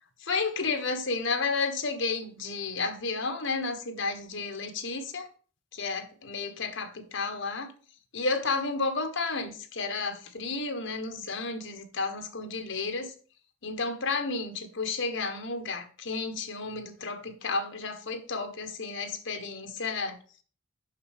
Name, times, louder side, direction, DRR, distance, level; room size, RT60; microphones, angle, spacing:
voice 1, 0.2-5.3 5.7-7.7 8.1-13.1 13.6-20.2, left 4 dB, 65° left, 1.4 m, -32 dB
6.5 x 5.6 x 6.6 m
head